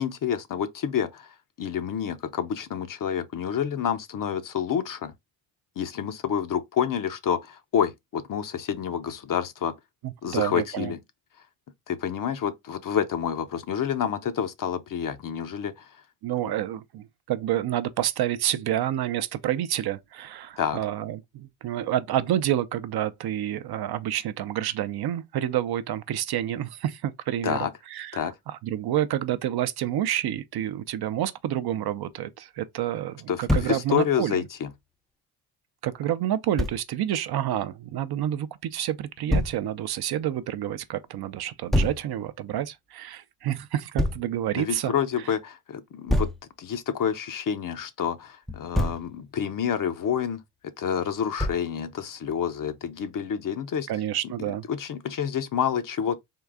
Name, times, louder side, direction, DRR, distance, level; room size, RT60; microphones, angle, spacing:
voice 1, 0.0-5.1 5.8-9.7 10.2-11.0 11.9-15.9 20.6-20.8 27.4-27.7 28.1-28.3 33.3-34.7 44.5-46.3 46.6-50.4 50.8-53.9 54.4-56.2, left 8 dB, 45° left, 0.7 m, -28 dB
voice 2, 10.0-10.9 16.2-34.4 35.8-44.9 53.9-54.6, right 11 dB, 55° right, 0.5 m, -29 dB
Thump thud, 33.5-33.8 36.6-36.8 39.3-39.6 41.7-42.0 44.0-44.2 46.1-46.4 48.5-49.1 51.4-51.7, left 1 dB, ahead, 0.4 m, -25 dB
3.8 x 2.3 x 3.4 m
supercardioid pair, 70°, 47 cm